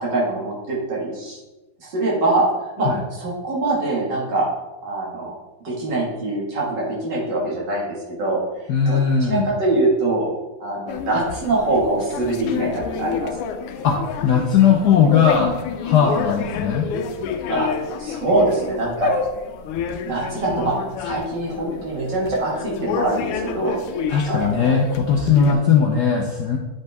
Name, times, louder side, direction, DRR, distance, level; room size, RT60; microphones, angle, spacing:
voice 1, 0.0-1.4 1.8-2.5 2.8-2.9 3.2-4.5 4.8-5.3 5.6-8.4 8.9-10.3 10.6-13.3 17.5-17.7 18.0-19.1 20.1-23.8 24.3-24.8 25.5-25.6, right 2 dB, 55° right, -4 dB, 2.4 m, -23 dB
voice 2, 8.7-9.5 13.8-14.0 14.2-15.6 15.8-16.9 24.1-26.6, left 7 dB, 70° left, 1 dB, 1.0 m, -18 dB
sound 1, 10.9-25.5, left 6 dB, 90° left, 1.6 m, -29 dB
8.6 x 5.4 x 3.4 m, 1.1 s
omnidirectional pair, 2.4 m